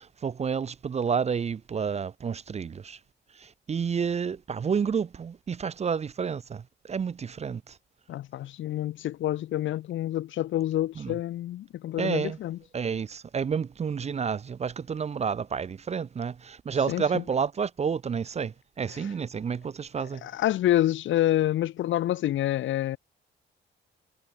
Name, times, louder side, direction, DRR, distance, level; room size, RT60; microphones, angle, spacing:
voice 1, 0.0-3.0 3.4-7.7 11.0-11.2 12.0-12.4 12.7-20.2, right 6 dB, 35° right, 0.6 m, -30 dB
voice 2, 8.1-12.6 16.9-17.2 18.9-19.1 20.2-23.0, left 13 dB, 75° left, 1.2 m, -27 dB
cardioid pair, 90°, 20 cm